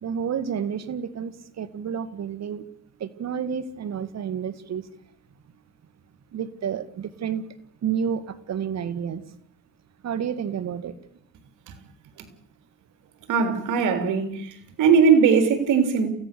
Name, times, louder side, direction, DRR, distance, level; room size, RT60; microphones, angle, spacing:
voice 1, 0.0-2.6 3.0-4.8 6.3-7.5 7.8-9.2 10.0-11.0, right 8 dB, 60° right, 1.9 m, -30 dB
voice 2, 13.3-14.5 14.8-16.1, right 6 dB, 85° right, 3.7 m, -19 dB
28.5 x 16.0 x 6.9 m
cardioid pair, 90°, 30 cm